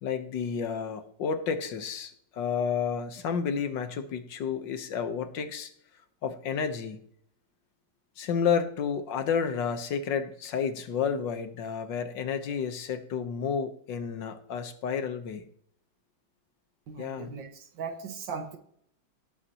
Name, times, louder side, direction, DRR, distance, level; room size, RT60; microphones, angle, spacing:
voice 1, 0.0-5.7 6.2-7.0 8.2-15.4 17.0-17.3, left 6 dB, 75° left, 9 dB, 1.7 m, -31 dB
voice 2, 16.9-18.6, right 5 dB, 80° right, 6 dB, 2.1 m, -38 dB
17.5 x 8.3 x 2.9 m, 0.66 s
omnidirectional pair, 2.0 m